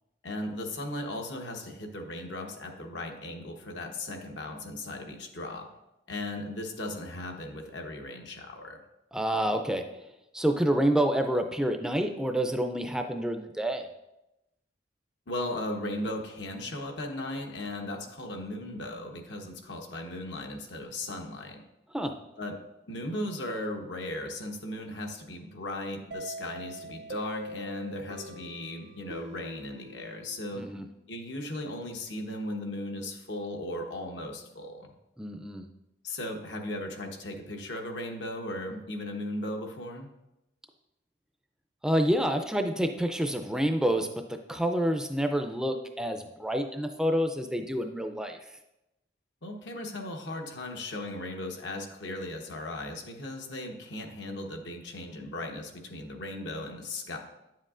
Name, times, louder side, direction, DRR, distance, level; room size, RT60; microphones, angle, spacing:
voice 1, 0.2-5.7 6.1-8.8 15.3-21.6 22.4-22.6 22.9-30.6 31.1-34.9 36.0-40.1 49.4-57.2, left 1 dB, 80° left, 3 dB, 1.0 m, -37 dB
voice 2, 9.1-9.8 10.3-13.9 21.9-22.1 30.5-30.9 35.2-35.7 41.8-48.4, equal, 5° right, 5 dB, 0.3 m, -28 dB
sound 1, 26.1-30.8, right 1 dB, 70° right, 0.7 m, -43 dB
9.5 x 7.6 x 2.5 m, 0.92 s
head